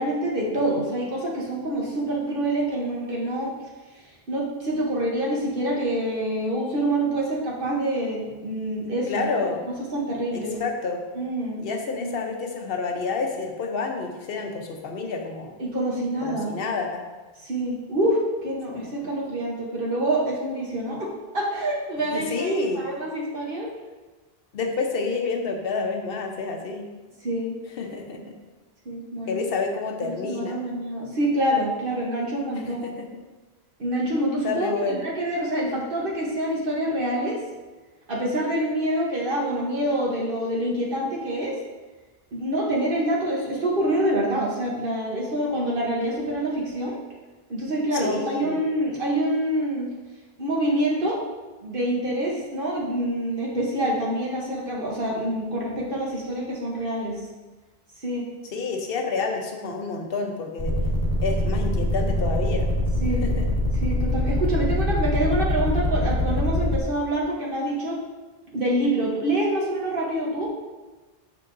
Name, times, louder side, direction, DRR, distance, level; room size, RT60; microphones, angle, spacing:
voice 1, 0.0-3.5 4.3-9.3 9.7-10.6 11.1-11.6 12.0-12.2 15.6-16.5 17.4-21.1 21.3-23.7 27.2-27.6 28.8-29.4 30.1-32.9 33.8-37.4 38.1-41.6 42.3-47.0 47.5-49.9 50.4-51.2 51.6-57.2 58.0-58.3 63.0-63.2 63.8-68.0 68.5-70.5, right 1 dB, 60° right, -3 dB, 1.2 m, -26 dB
voice 2, 9.1-9.6 10.3-11.0 11.6-15.5 16.2-17.0 18.7-18.9 22.1-22.9 24.5-26.9 27.8-28.4 29.3-30.6 32.5-33.1 34.4-35.0 47.9-48.6 58.5-60.7 61.2-62.7 63.2-63.5, left 4 dB, 65° left, 3 dB, 1.0 m, -29 dB
sound 1, 60.6-66.8, left 1 dB, 35° left, 1.2 m, -23 dB
6.7 x 6.6 x 2.6 m, 1.2 s
omnidirectional pair, 1.1 m